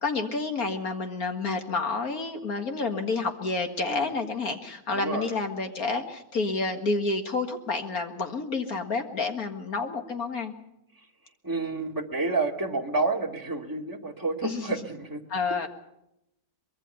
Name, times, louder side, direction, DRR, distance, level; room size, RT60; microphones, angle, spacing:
voice 1, 0.0-10.5 14.4-14.8 15.3-15.7, left 3 dB, 55° left, 5 dB, 2.2 m, -29 dB
voice 2, 3.9-4.2 4.9-5.3 11.4-15.2, right 3 dB, 10° right, 1 dB, 2.2 m, -29 dB
24.0 x 22.0 x 5.6 m, 0.84 s
omnidirectional pair, 1.9 m